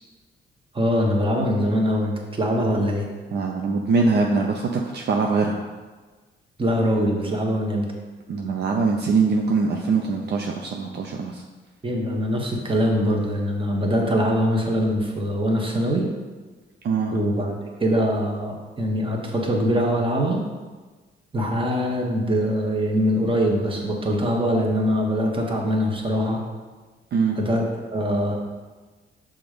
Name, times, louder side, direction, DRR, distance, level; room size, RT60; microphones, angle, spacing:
voice 1, 0.7-3.0 6.6-7.8 11.8-16.0 17.1-17.5 17.8-20.4 21.3-26.4 27.4-28.3, equal, 25° right, 0 dB, 1.3 m, -23 dB
voice 2, 3.3-5.6 8.3-11.4 16.8-17.1 27.1-27.4, right 4 dB, 55° right, 2 dB, 0.6 m, -22 dB
6.0 x 3.8 x 5.1 m, 1.3 s
cardioid pair, 90°, 20 cm